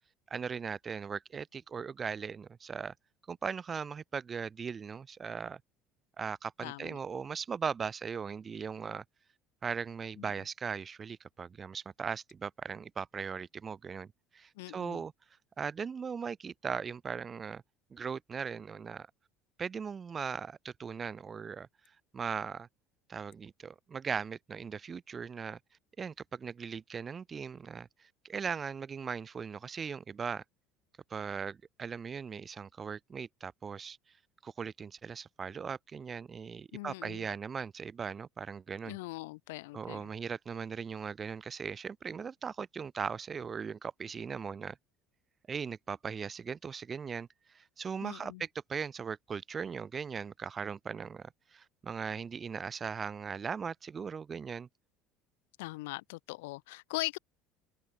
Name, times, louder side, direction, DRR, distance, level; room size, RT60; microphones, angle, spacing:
voice 1, 0.3-2.9 3.3-5.6 6.2-9.0 9.6-14.1 14.3-15.1 15.6-17.6 17.9-19.1 19.6-21.7 22.1-22.7 23.1-25.6 26.0-30.4 31.1-34.0 34.4-39.0 39.7-44.8 45.5-54.7, right 6 dB, 30° right, 4.2 m, -39 dB
voice 2, 6.6-7.0 10.2-10.3 14.5-15.0 36.7-37.3 38.8-40.1 48.0-48.4 55.6-57.2, left 22 dB, 65° left, 3.4 m, -41 dB
open air
figure-of-eight pair, 65°, 0 cm